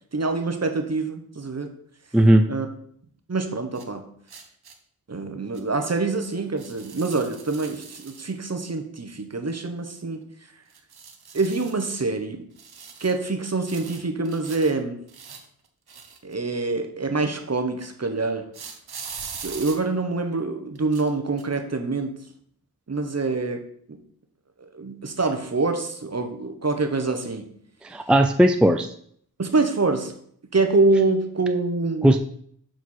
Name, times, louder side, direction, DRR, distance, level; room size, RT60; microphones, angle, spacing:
voice 1, 0.1-1.7 2.5-2.7 3.3-4.0 5.1-10.2 11.3-12.4 13.0-15.0 16.2-18.4 19.4-22.1 22.9-23.6 24.7-27.5 29.4-30.1 30.5-32.2, right 3 dB, 45° right, 6 dB, 1.1 m, -25 dB
voice 2, 2.1-2.4 27.8-28.9 32.0-32.2, right 1 dB, 5° right, 7 dB, 0.4 m, -17 dB
sound 1, 3.7-3.9 4.3-4.7 5.5-5.6 6.6-8.3 10.7-11.8 12.6-13.2 13.7-14.7 15.1-16.6 18.5-19.8 20.8-21.1 21.4-21.5, right 6 dB, 80° right, 0.9 m, -41 dB
6.9 x 4.6 x 4.3 m, 0.63 s
wide cardioid pair, 50°, 37 cm